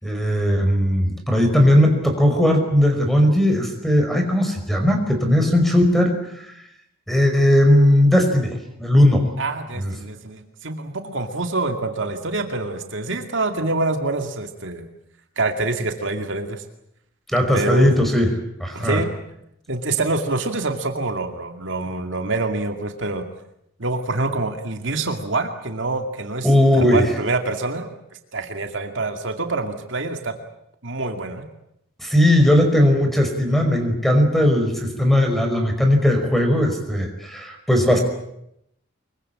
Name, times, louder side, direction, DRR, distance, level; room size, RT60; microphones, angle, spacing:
voice 1, 0.0-6.5 7.1-9.3 9.8-9.9 17.3-18.3 18.6-19.0 26.4-27.0 32.0-38.0, left 1 dB, ahead, 5 dB, 5.1 m, -18 dB
voice 2, 9.4-14.9 15.4-16.6 17.5-17.9 18.7-19.1 19.7-23.2 23.8-27.9 28.3-30.3 30.8-31.5, right 3 dB, 60° right, 5 dB, 2.4 m, -26 dB
24.5 x 23.0 x 8.8 m, 0.80 s
head